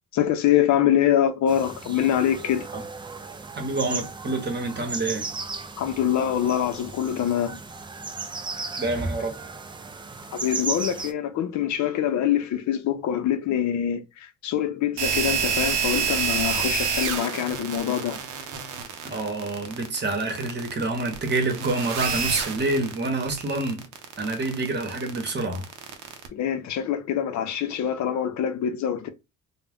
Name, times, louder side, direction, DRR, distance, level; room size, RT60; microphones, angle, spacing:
voice 1, 0.1-2.7 5.8-7.6 10.3-18.2 26.3-29.1, left 10 dB, 70° left, 0.5 m, -24 dB
sound 1, 1.5-11.1, right 3 dB, 15° right, 0.3 m, -35 dB
voice 2, 3.6-5.3 8.8-9.4 19.0-23.8 24.2-25.7, right 2 dB, 35° right, 0.9 m, -27 dB
sound 2, 15.0-26.3, right 6 dB, 90° right, 0.6 m, -28 dB
2.3 x 2.1 x 3.4 m
cardioid pair, 90°, 30 cm